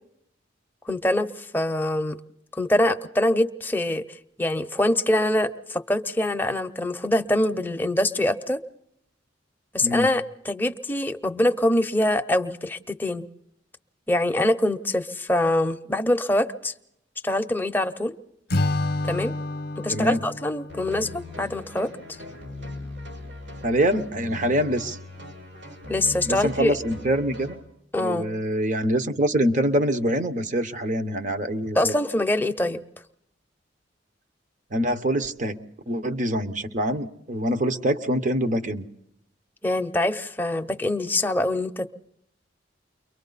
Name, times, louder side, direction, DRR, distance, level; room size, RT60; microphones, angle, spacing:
voice 1, 0.9-2.2 2.6-8.6 9.7-13.2 14.1-16.7 17.2-18.1 19.0-19.4 19.8-21.9 25.9-26.8 27.9-28.3 31.7-32.8 39.6-41.9, left 1 dB, 10° left, 6 dB, 0.7 m, -24 dB
Acoustic guitar / Strum, 18.5-21.8, left 2 dB, 55° left, 0.7 m, -29 dB
voice 2, 19.9-20.2 23.6-25.0 26.2-27.5 28.0-32.0 34.7-35.6 35.9-38.9, right 1 dB, 45° right, 9 dB, 1.0 m, -25 dB
sound 1, 20.7-27.5, left 1 dB, 75° right, 6.3 m, -39 dB
29.5 x 23.5 x 4.0 m, 0.77 s
head